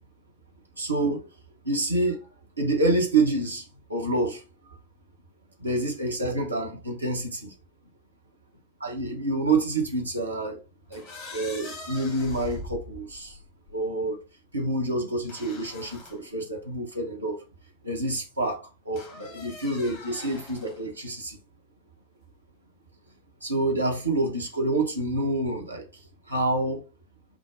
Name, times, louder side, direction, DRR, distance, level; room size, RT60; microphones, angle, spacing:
voice 1, 0.8-1.2 1.6-2.3 2.6-4.4 5.6-7.5 8.8-10.6 10.9-11.1 11.3-13.4 13.7-14.2 14.5-17.4 17.8-21.4 23.4-25.8 26.3-26.8, right 2 dB, 80° right, 1.0 m, -27 dB
sound 1, 10.9-13.8 15.3-16.2 16.9-17.0 19.0-20.8, left 2 dB, 45° left, 1.3 m, -42 dB
4.8 x 2.1 x 3.7 m
figure-of-eight pair, 90°, 0 cm